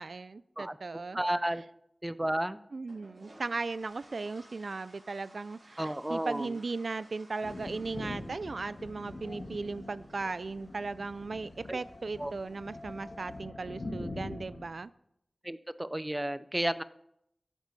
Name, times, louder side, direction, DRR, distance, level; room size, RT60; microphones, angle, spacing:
voice 1, 0.0-1.2 2.7-14.9, right 3 dB, 75° right, 16 dB, 0.4 m, -37 dB
voice 2, 0.6-1.6 2.0-2.6 5.8-6.5 11.7-11.8 12.2-12.3 15.4-16.8, right 1 dB, 20° right, 15 dB, 0.5 m, -32 dB
sound 1, 2.9-13.4, right 1 dB, 55° right, 4.0 m, -60 dB
Thunder, 7.4-14.7, left 2 dB, 70° left, 1.7 m, -43 dB
13.0 x 8.2 x 4.1 m, 0.77 s
wide cardioid pair, 55°, 0 cm